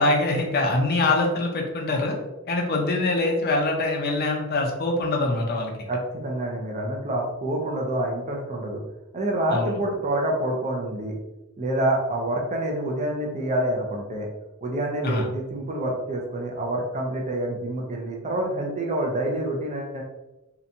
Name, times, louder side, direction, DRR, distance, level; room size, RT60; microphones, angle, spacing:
voice 1, 0.0-2.2 2.5-5.7 9.5-9.8 15.0-15.3, left 2 dB, 50° left, 1 dB, 0.5 m, -24 dB
voice 2, 5.9-8.8 9.1-11.1 11.6-14.3 14.6-20.0, right 1 dB, 35° right, 0 dB, 0.4 m, -27 dB
2.8 x 2.2 x 2.5 m, 1.0 s
head